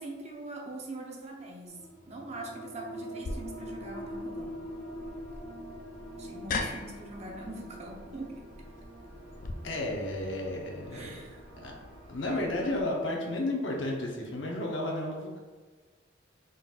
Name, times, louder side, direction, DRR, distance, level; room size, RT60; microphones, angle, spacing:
voice 1, 0.0-1.8 2.0-4.5 6.2-8.3 10.9-11.4, right 2 dB, 35° right, 0 dB, 0.6 m, -42 dB
sound 1, 1.7-12.9, equal, 25° left, 1.0 m, -45 dB
sound 2, 3.2-9.5, left 3 dB, 45° left, 0.3 m, -40 dB
sound 3, 3.3-12.8, right 1 dB, 55° right, 1.4 m, -51 dB
voice 2, 9.6-11.2 11.6-11.7 12.1-15.4, left 1 dB, 70° left, 0 dB, 0.8 m, -32 dB
4.0 x 3.8 x 2.4 m, 1.4 s
head